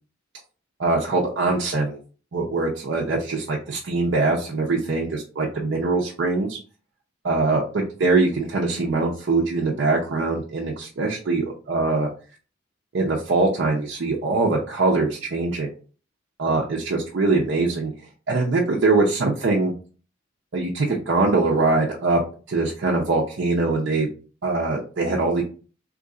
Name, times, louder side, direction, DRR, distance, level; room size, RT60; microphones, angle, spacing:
voice 1, 0.8-2.0 2.3-6.6 7.2-12.1 12.9-15.7 16.4-17.9 18.3-19.7 20.5-22.2 22.5-24.1 24.4-25.4, right 3 dB, 60° right, -2 dB, 0.6 m, -22 dB
3.1 x 2.5 x 3.7 m, 0.38 s
head